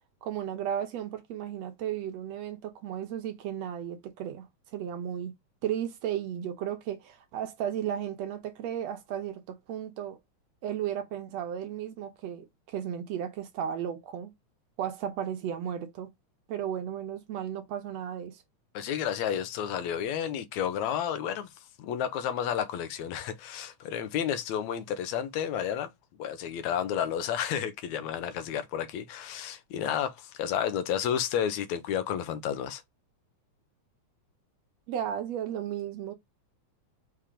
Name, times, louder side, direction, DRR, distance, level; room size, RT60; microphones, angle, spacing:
voice 1, 0.2-4.5 4.7-5.3 5.6-10.2 10.6-14.3 14.8-16.1 16.5-18.4 34.9-36.1, right 9 dB, 70° right, 2.1 m, -34 dB
voice 2, 18.7-21.5 21.8-25.9 26.2-32.8, left 9 dB, 75° left, 2.2 m, -31 dB
5.9 x 3.5 x 4.9 m
omnidirectional pair, 3.3 m